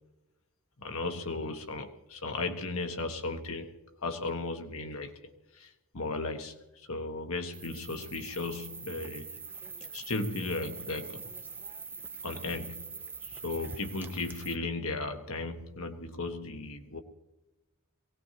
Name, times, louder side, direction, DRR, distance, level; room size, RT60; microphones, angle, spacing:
voice 1, 0.8-3.7 4.0-5.1 5.5-9.3 9.9-11.3 12.2-13.0 13.2-17.0, left 3 dB, 80° left, 5 dB, 1.4 m, -36 dB
sound 1, 7.5-14.5, right 4 dB, 10° right, 0.5 m, -44 dB
23.0 x 18.0 x 2.9 m, 1.0 s
head